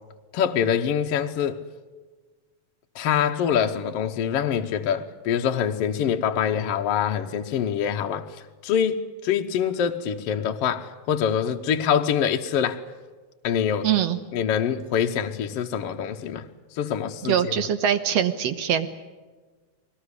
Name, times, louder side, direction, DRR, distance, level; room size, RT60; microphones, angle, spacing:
voice 1, 0.3-1.6 3.0-8.3 8.6-12.8 13.4-13.9 14.3-16.4 16.8-17.5, left 8 dB, 65° left, 1.7 m, -25 dB
voice 2, 13.8-14.2 17.2-18.9, right 9 dB, 65° right, 2.1 m, -23 dB
23.0 x 19.0 x 9.7 m
omnidirectional pair, 3.4 m